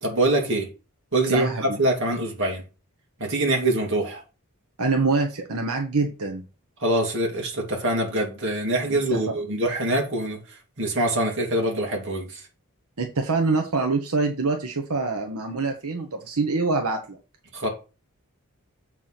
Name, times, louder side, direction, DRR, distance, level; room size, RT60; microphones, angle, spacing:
voice 1, 0.0-0.7 1.1-2.6 3.2-4.2 6.8-10.4 10.8-12.4 17.5-17.7, right 1 dB, 55° right, 2.6 m, -24 dB
voice 2, 1.3-1.8 4.8-6.4 9.1-9.2 13.0-17.2, right 3 dB, 85° right, 1.2 m, -25 dB
7.5 x 4.8 x 5.8 m
head